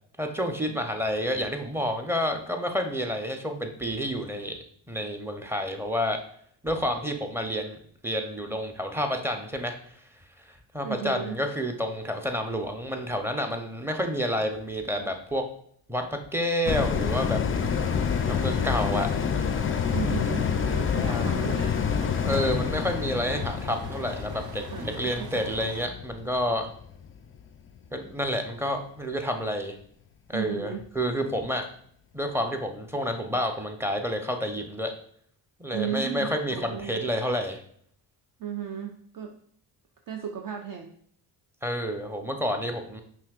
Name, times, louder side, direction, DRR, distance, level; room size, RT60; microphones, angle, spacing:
voice 1, 0.2-4.6 4.9-6.2 6.6-9.9 10.4-15.4 15.9-17.4 18.3-19.1 21.0-21.3 22.2-26.7 27.9-29.8 30.3-31.7 32.1-34.9 35.6-37.6 41.6-43.0, equal, 5° right, 5 dB, 0.6 m, -29 dB
voice 2, 10.8-11.4 19.9-21.9 22.5-22.6 23.3-23.4 24.7-25.9 30.3-30.9 35.7-37.0 38.4-39.4 40.1-40.9, right 8 dB, 45° right, 4 dB, 0.5 m, -35 dB
sound 1, 16.7-27.4 27.8-27.9, left 7 dB, 30° left, 0.4 m, -28 dB
sound 2, 17.5-25.9, right 3 dB, 90° right, 0.8 m, -44 dB
5.5 x 2.7 x 2.4 m, 0.62 s
supercardioid pair, 55°, 48 cm